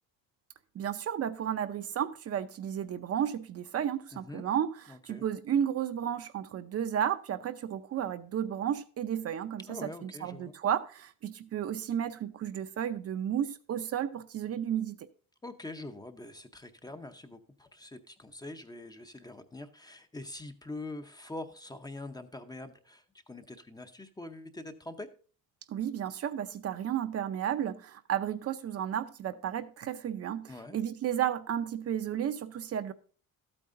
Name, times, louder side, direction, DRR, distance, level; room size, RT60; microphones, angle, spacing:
voice 1, 0.7-15.1 25.7-32.9, right 9 dB, 45° right, 0.6 m, -33 dB
voice 2, 4.1-4.4 4.9-5.3 9.7-10.5 15.4-25.1 30.5-30.8, left 2 dB, 10° left, 0.7 m, -44 dB
13.0 x 8.7 x 2.6 m
cardioid pair, 150°, 35 cm